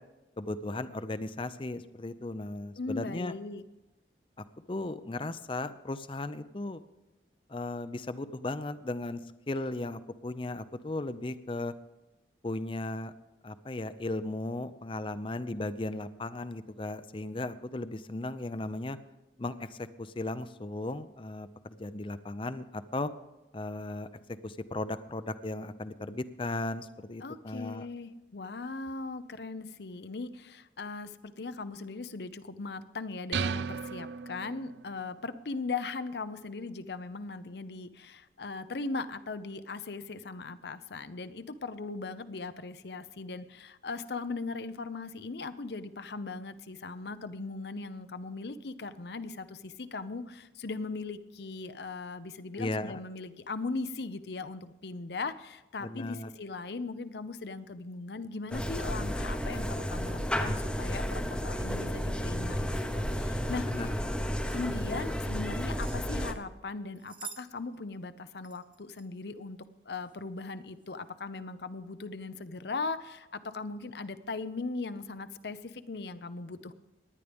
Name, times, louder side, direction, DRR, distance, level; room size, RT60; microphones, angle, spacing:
voice 1, 0.4-3.3 4.7-6.8 7.5-9.2 9.5-11.7 12.4-13.1 13.4-19.0 19.4-23.1 23.5-24.1 24.4-27.9 52.6-53.0 55.8-56.3 63.6-63.9, left 2 dB, 30° left, 13 dB, 0.5 m, -36 dB
voice 2, 2.8-3.6 27.2-64.0 64.5-69.6 69.9-76.7, left 3 dB, 70° left, 13 dB, 0.7 m, -39 dB
sound 1, 33.3-34.9, right 6 dB, 80° right, 0.4 m, -35 dB
sound 2, 58.5-66.3, equal, 5° left, 0.8 m, -32 dB
sound 3, 65.8-66.4 67.0-67.5 67.7-67.8 68.4-69.1 69.9-70.2 70.7-70.9, right 7 dB, 25° right, 1.3 m, -47 dB
18.5 x 11.0 x 3.5 m, 1.0 s
head